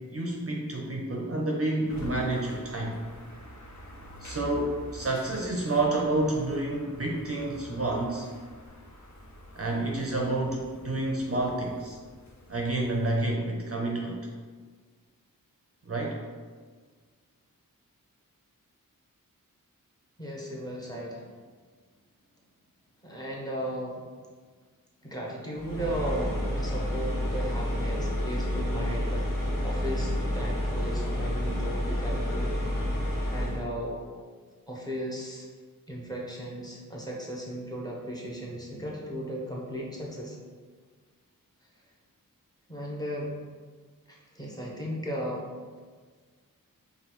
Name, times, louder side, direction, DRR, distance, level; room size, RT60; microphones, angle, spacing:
voice 1, 0.1-3.0 4.2-8.3 9.6-12.0 12.5-14.2 15.9-16.2, right 2 dB, 45° right, -1 dB, 0.5 m, -29 dB
sound 1, 1.9-13.2, left 1 dB, 55° left, 0.6 m, -47 dB
voice 2, 20.2-21.2 23.0-24.0 25.0-32.6 33.3-34.0 34.7-35.5 35.9-40.4 42.7-43.3 44.1-45.4, equal, 10° left, -3 dB, 0.8 m, -36 dB
sound 2, 25.5-33.6, left 1 dB, 70° left, 1.1 m, -29 dB
5.0 x 2.3 x 3.0 m, 1.5 s
wide cardioid pair, 85°, 35 cm